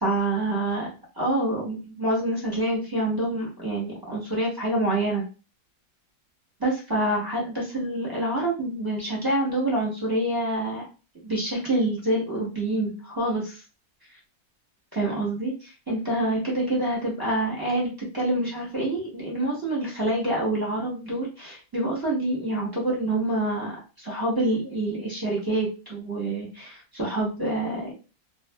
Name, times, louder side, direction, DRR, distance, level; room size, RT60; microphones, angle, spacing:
voice 1, 0.0-0.9 1.2-5.2 6.6-10.9 11.2-13.6 14.9-27.9, right 1 dB, 20° right, -5 dB, 0.8 m, -27 dB
2.5 x 2.2 x 2.2 m, 0.32 s
omnidirectional pair, 1.7 m